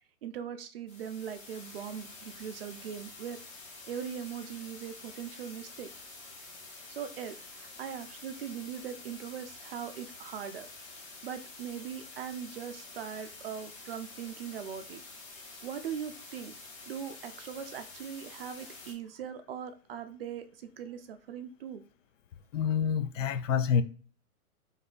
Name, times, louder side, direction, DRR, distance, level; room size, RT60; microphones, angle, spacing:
voice 1, 0.2-3.4 3.9-5.9 6.9-10.7 10.9-15.0 15.6-16.5 16.9-21.8, right 8 dB, 45° right, 0.4 m, -40 dB
sound 1, 0.9-18.9, left 3 dB, 15° left, 0.6 m, -48 dB
voice 2, 22.5-23.8, left 7 dB, 60° left, 0.5 m, -27 dB
3.4 x 2.7 x 3.8 m
hypercardioid pair, 130°, 44 cm